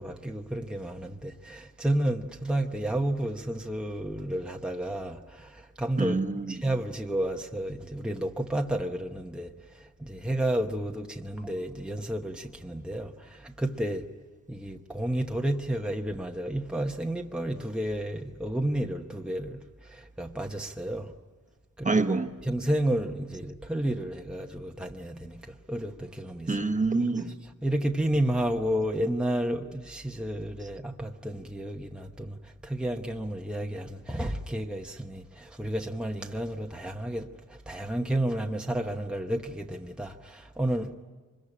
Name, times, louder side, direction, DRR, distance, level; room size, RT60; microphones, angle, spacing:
voice 1, 0.0-6.2 6.5-9.5 9.7-14.0 14.5-21.1 21.8-22.0 22.5-26.6 27.6-40.9, right 1 dB, 5° right, 1.0 m, -31 dB
voice 2, 6.0-6.6 21.8-22.3 26.5-27.3, right 3 dB, 25° right, 1.1 m, -26 dB
25.0 x 22.0 x 9.9 m
wide cardioid pair, 150°, 30 cm